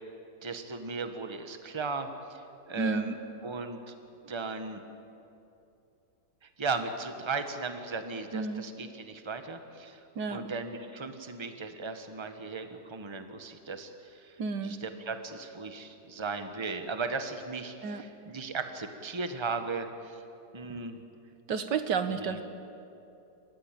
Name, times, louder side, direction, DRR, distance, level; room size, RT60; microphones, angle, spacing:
voice 1, 0.4-3.1 3.4-3.9 4.2-4.8 6.4-10.0 10.3-20.2 20.5-21.0 22.1-22.4, right 4 dB, 20° right, 7 dB, 1.2 m, -37 dB
voice 2, 2.8-3.2 8.3-8.6 10.2-10.5 14.4-14.8 17.8-18.0 21.5-22.4, right 5 dB, 80° right, 9 dB, 1.9 m, -31 dB
29.5 x 15.0 x 9.2 m, 2.8 s
omnidirectional pair, 1.9 m